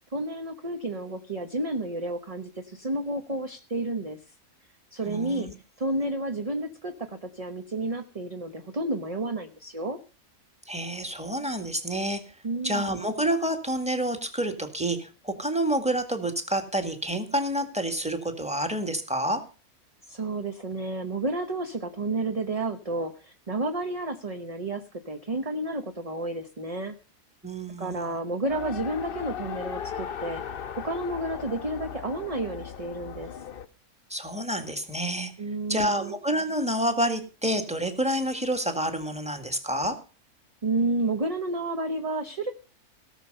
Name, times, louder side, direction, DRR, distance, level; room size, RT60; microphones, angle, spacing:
voice 1, 0.1-4.2 4.9-5.5 5.8-10.0 12.4-13.0 20.1-26.9 27.8-30.4 30.8-33.3 35.4-36.1 40.6-42.5, right 2 dB, 30° right, 6 dB, 0.9 m, -31 dB
voice 2, 5.1-5.5 10.7-12.2 12.6-19.4 27.4-28.1 34.1-35.3 35.7-40.0, right 1 dB, 5° right, 6 dB, 1.8 m, -28 dB
Race car auto racing, 28.5-33.7, left 8 dB, 50° left, 0.8 m, -37 dB
17.5 x 6.8 x 6.7 m, 0.36 s
omnidirectional pair, 1.6 m